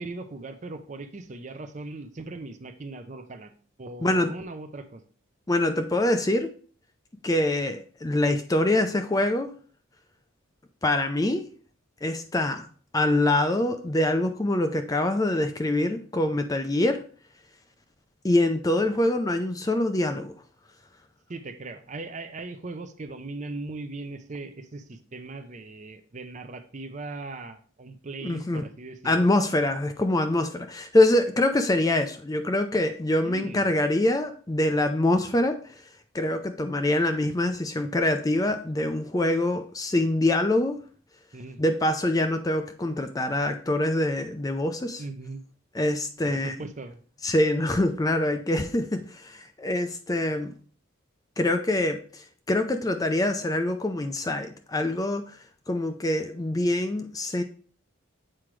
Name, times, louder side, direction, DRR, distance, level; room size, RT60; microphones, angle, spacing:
voice 1, 0.0-3.5 3.8-5.1 21.3-29.3 33.2-33.7 41.3-41.6 45.0-45.4 46.3-47.0, right 2 dB, 35° right, 8 dB, 0.5 m, -39 dB
voice 2, 4.0-4.3 5.5-6.5 7.2-9.5 10.8-11.4 12.0-12.7 12.9-17.0 18.2-20.3 28.2-28.6 29.0-35.6 36.1-40.8 41.6-45.0 45.7-46.5 47.2-50.5 51.4-55.4 55.7-57.4, left 1 dB, 15° left, 7 dB, 0.4 m, -24 dB
7.6 x 4.8 x 3.2 m, 0.42 s
head